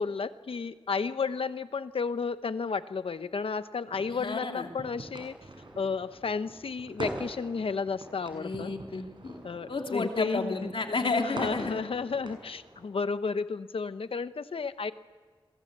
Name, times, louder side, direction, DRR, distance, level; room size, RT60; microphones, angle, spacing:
voice 1, 0.0-5.3 5.8-8.7 9.4-10.7 11.2-14.9, left 5 dB, 90° left, 12 dB, 1.0 m, -32 dB
sound 1, 3.9-12.9, right 1 dB, 60° right, 6.0 m, -44 dB
voice 2, 4.2-4.7 8.3-9.4 9.7-11.8, left 3 dB, 75° left, 3 dB, 3.0 m, -32 dB
29.5 x 23.0 x 8.2 m, 1.4 s
wide cardioid pair, 95°, 9 cm